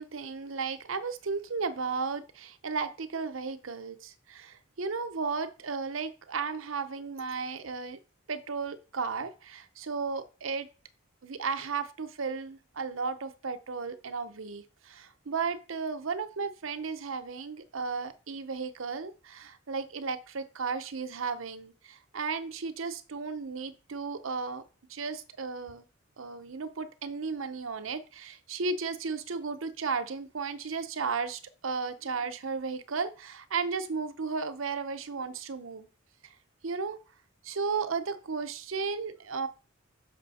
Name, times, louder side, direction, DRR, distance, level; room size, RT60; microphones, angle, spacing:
voice 1, 0.0-8.0 8.3-10.7 11.2-24.6 24.9-25.8 26.2-35.9 36.6-37.0 37.4-39.5, right 5 dB, 80° right, 9 dB, 0.8 m, -34 dB
6.2 x 6.0 x 4.2 m, 0.33 s
head